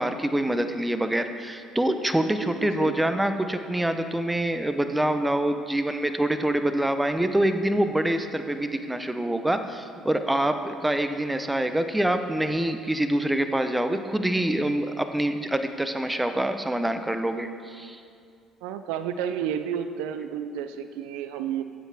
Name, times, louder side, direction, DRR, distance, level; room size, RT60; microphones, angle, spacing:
voice 1, 0.0-18.0, right 1 dB, 10° right, 8 dB, 0.7 m, -25 dB
voice 2, 2.4-3.2 18.6-21.6, right 8 dB, 80° right, 10 dB, 0.4 m, -31 dB
13.5 x 8.2 x 3.5 m, 2.3 s
supercardioid pair, 70°, 0 cm